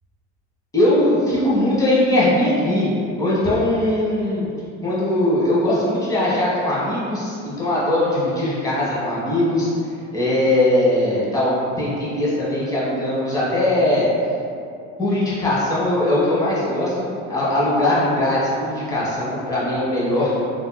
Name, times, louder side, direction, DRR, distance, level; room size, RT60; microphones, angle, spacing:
voice 1, 0.7-2.9 3.2-4.5 4.8-9.7 10.1-14.1 15.0-20.4, left 1 dB, 10° left, -9 dB, 1.1 m, -20 dB
3.4 x 2.7 x 2.2 m, 2.5 s
supercardioid pair, 105°, 29 cm